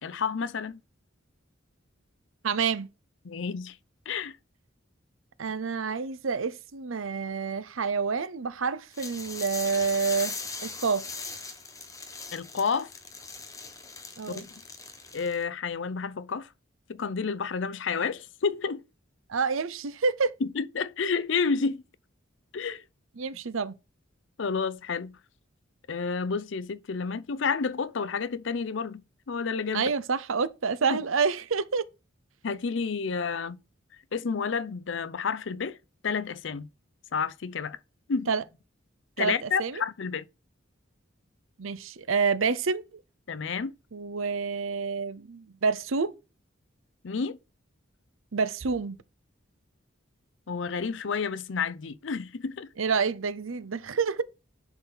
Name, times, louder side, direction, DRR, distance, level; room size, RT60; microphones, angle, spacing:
voice 1, 0.0-0.8 3.2-3.8 4.1-4.4 12.3-12.9 14.3-14.6 15.1-16.5 16.9-18.8 20.4-21.8 22.5-22.8 24.4-25.2 25.9-29.9 30.9-31.0 32.4-33.6 34.1-35.8 36.0-36.7 37.1-37.8 38.1-38.3 39.2-40.2 43.3-43.7 47.0-47.4 50.5-52.7, left 5 dB, 65° left, 0.5 m, -30 dB
voice 2, 2.4-2.9 5.4-10.3 10.6-11.0 14.2-14.4 19.3-20.4 23.2-23.7 29.7-31.9 38.3-38.4 39.2-39.8 41.6-43.0 43.9-46.1 48.3-49.0 52.8-54.2, right 5 dB, 85° right, 0.7 m, -28 dB
sound 1, 8.9-15.4, left 4 dB, 15° left, 1.1 m, -40 dB
10.5 x 4.1 x 3.9 m
head